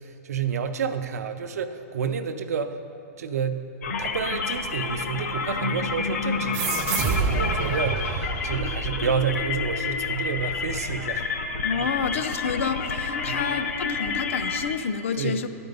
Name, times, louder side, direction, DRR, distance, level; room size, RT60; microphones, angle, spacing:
voice 1, 0.2-2.8 3.2-3.7 4.0-11.2 11.8-11.9 13.3-13.5 15.2-15.4, right 6 dB, 75° right, 8 dB, 0.5 m, -29 dB
sound 1, 3.8-14.8, left 4 dB, 75° left, 0.7 m, -29 dB
sound 2, 6.5-9.6, right 5 dB, 20° right, 0.4 m, -28 dB
voice 2, 11.6-15.5, left 6 dB, 55° left, 10 dB, 0.4 m, -29 dB
10.5 x 4.4 x 5.3 m, 2.7 s
hypercardioid pair, 175°, 8 cm